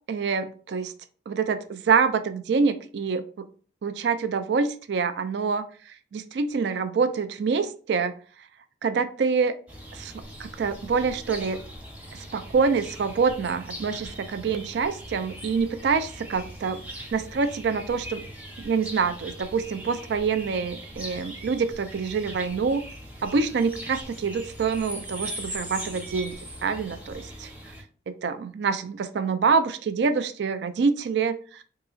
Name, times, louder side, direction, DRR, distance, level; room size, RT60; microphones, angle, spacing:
voice 1, 0.1-0.9 1.3-3.3 3.8-5.7 6.1-8.1 8.8-9.6 9.9-10.1 10.4-11.6 12.3-16.8 17.1-18.2 18.6-22.8 23.2-26.4 26.6-27.5 28.1-31.6, right 5 dB, 75° right, 10 dB, 0.4 m, -26 dB
sound 1, 9.7-27.8, right 1 dB, 10° right, 0.7 m, -40 dB
3.7 x 2.8 x 2.4 m, 0.41 s
head